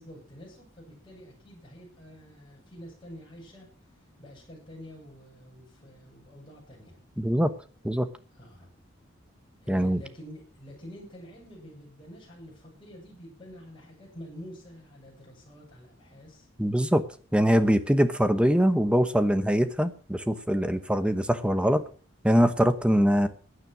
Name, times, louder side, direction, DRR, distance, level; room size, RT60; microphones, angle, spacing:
voice 1, 0.0-3.7 3.9-7.0 8.3-8.7 9.6-16.5, equal, 25° left, -3 dB, 7.5 m, -47 dB
voice 2, 7.2-7.5 7.8-8.1 9.7-10.0 16.6-17.0 17.3-21.8 22.2-23.3, equal, 5° right, 11 dB, 1.0 m, -23 dB
15.5 x 9.9 x 6.0 m, 0.41 s
head